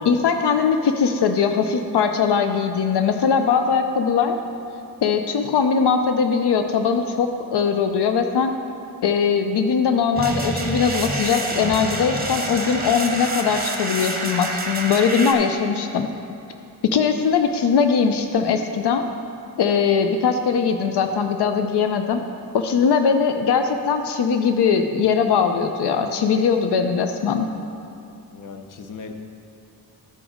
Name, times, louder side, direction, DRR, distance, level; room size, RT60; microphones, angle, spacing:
voice 1, 0.0-4.4 5.0-8.5 9.0-16.1 16.9-19.0 19.6-22.2 22.5-27.5, left 6 dB, 85° left, 6 dB, 0.6 m, -20 dB
sound 1, 10.2-15.3, right 2 dB, 25° right, 0.9 m, -27 dB
voice 2, 28.3-29.1, left 5 dB, 55° left, 5 dB, 0.7 m, -38 dB
12.5 x 5.0 x 4.9 m, 2.7 s
wide cardioid pair, 160°, 39 cm